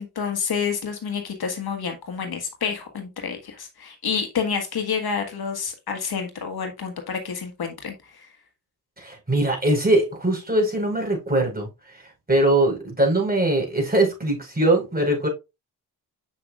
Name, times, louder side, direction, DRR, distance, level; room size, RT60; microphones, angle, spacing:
voice 1, 0.0-8.3, left 6 dB, 60° left, 1.6 m, -29 dB
voice 2, 9.0-11.7 12.3-15.3, right 1 dB, 20° right, 4.5 m, -21 dB
7.7 x 5.9 x 2.4 m
supercardioid pair, 50°, 41 cm